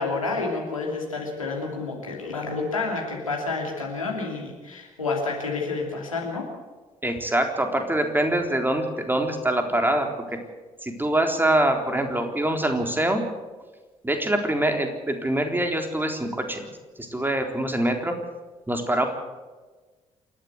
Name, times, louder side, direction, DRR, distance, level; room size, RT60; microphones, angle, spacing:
voice 1, 0.0-6.5, left 3 dB, 85° left, 0 dB, 2.9 m, -29 dB
voice 2, 7.0-10.4 10.8-13.2 14.0-16.7 17.0-18.2 18.7-19.1, right 1 dB, 10° right, 5 dB, 3.8 m, -24 dB
28.0 x 12.5 x 8.1 m, 1.3 s
figure-of-eight pair, 45°, 17 cm